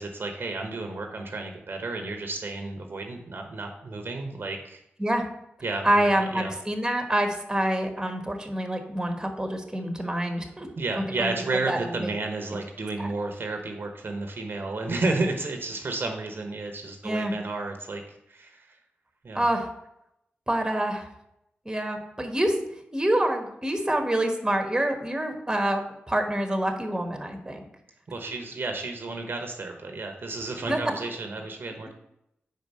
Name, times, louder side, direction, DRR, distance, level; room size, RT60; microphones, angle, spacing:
voice 1, 0.0-4.8 5.6-6.5 10.8-18.0 18.3-18.8 19.2-19.4 28.1-31.9, right 3 dB, 55° right, 4 dB, 1.0 m, -32 dB
voice 2, 5.8-10.7 10.9-11.4 11.7-12.1 13.0-13.1 17.0-17.3 19.3-19.7 20.5-21.1 21.6-22.6 22.9-27.7 30.6-30.8, right 1 dB, 15° right, 4 dB, 1.3 m, -26 dB
4.8 x 4.6 x 5.5 m, 0.81 s
cardioid pair, 45°, 4 cm